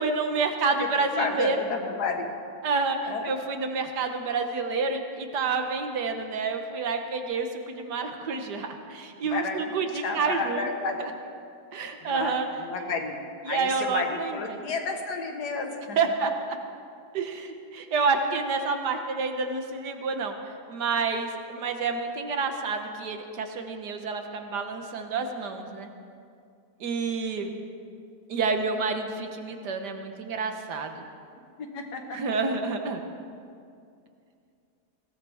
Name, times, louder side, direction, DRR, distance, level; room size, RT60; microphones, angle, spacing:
voice 1, 0.0-1.6 2.6-10.7 11.0-11.1 11.7-12.5 13.5-14.6 16.0-16.3 17.1-20.4 20.7-25.9 26.8-27.5 28.3-30.9 32.1-33.1, right 4 dB, 90° right, 5 dB, 1.8 m, -29 dB
voice 2, 1.2-2.3 3.1-3.3 9.2-9.6 10.0-11.1 12.0-13.2 13.5-16.0 31.6-32.2, left 4 dB, 75° left, 3 dB, 2.0 m, -31 dB
20.0 x 17.5 x 3.5 m, 2.4 s
omnidirectional pair, 1.7 m